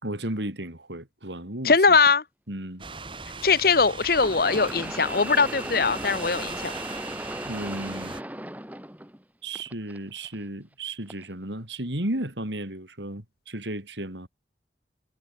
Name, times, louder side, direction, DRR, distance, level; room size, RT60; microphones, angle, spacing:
voice 1, 0.0-2.0 2.5-2.8 7.4-8.2 9.4-14.3, right 1 dB, 80° right, 5.3 m, -34 dB
voice 2, 1.6-2.2 3.4-6.7, left 4 dB, 55° left, 1.0 m, -21 dB
sound 1, 2.1-2.2 4.2-9.2 9.5-10.3 11.1-11.2 12.2-12.3, right 1 dB, 10° right, 3.4 m, -36 dB
sound 2, 2.8-8.2, right 4 dB, 30° right, 3.3 m, -40 dB
head